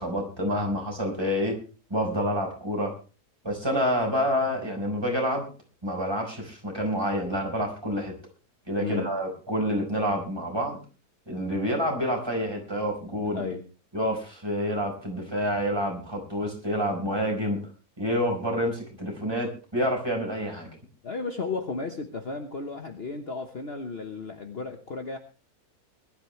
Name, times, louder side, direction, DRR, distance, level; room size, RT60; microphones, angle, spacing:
voice 1, 0.0-1.6 1.9-2.9 3.4-5.4 5.8-8.1 8.7-10.8 11.3-13.4 13.9-17.6 18.0-20.7, equal, 15° right, 1 dB, 4.8 m, -28 dB
voice 2, 8.8-9.1 13.3-13.6 21.0-25.2, left 4 dB, 45° left, 5 dB, 1.4 m, -34 dB
21.0 x 12.0 x 3.3 m, 0.35 s
omnidirectional pair, 1.6 m